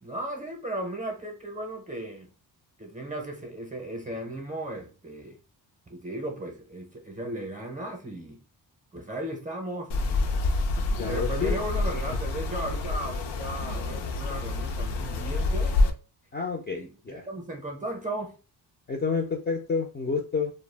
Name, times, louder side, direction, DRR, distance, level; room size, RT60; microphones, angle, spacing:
voice 1, 0.0-2.3 2.8-5.4 5.9-8.4 8.9-9.9 11.1-15.9 16.7-18.4, right 1 dB, 20° right, 0.6 m, -36 dB
sound 1, 9.9-15.9, left 2 dB, 80° left, 0.5 m, -27 dB
voice 2, 11.0-11.6 16.3-17.2 18.9-20.5, left 5 dB, 25° left, 0.3 m, -29 dB
2.2 x 2.0 x 3.2 m
cardioid pair, 110°, 41 cm